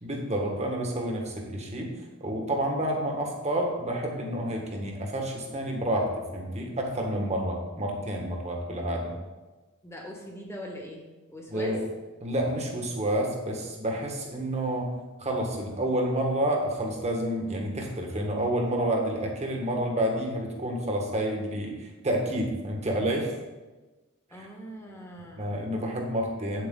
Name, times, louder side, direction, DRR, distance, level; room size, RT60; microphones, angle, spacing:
voice 1, 0.0-1.9 2.2-6.1 6.3-9.1 11.5-11.8 12.2-14.9 15.2-23.3 24.3-24.5 25.4-26.7, right 1 dB, 30° right, 1 dB, 1.6 m, -29 dB
voice 2, 9.8-11.8 24.3-25.6, equal, 10° left, 0 dB, 1.6 m, -42 dB
8.5 x 8.1 x 3.9 m, 1.2 s
head